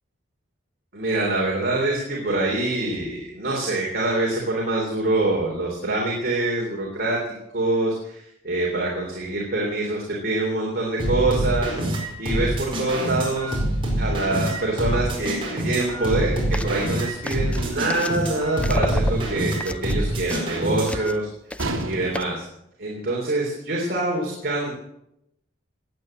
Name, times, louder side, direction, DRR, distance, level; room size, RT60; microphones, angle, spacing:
voice 1, 0.9-13.6 13.9-21.3 21.9-22.4 22.8-24.7, right 2 dB, 50° right, -2 dB, 3.6 m, -25 dB
sound 1, 11.0-21.1, right 1 dB, 25° right, 4.8 m, -26 dB
sound 2, 16.0-16.2 16.5-16.9 17.2-18.3 18.6-21.2 21.5-21.8 22.1-22.2, left 1 dB, 5° left, 0.5 m, -31 dB
sound 3, 17.6-18.1 21.6-22.4, right 2 dB, 80° right, 2.3 m, -31 dB
18.0 x 9.0 x 7.8 m, 0.80 s
head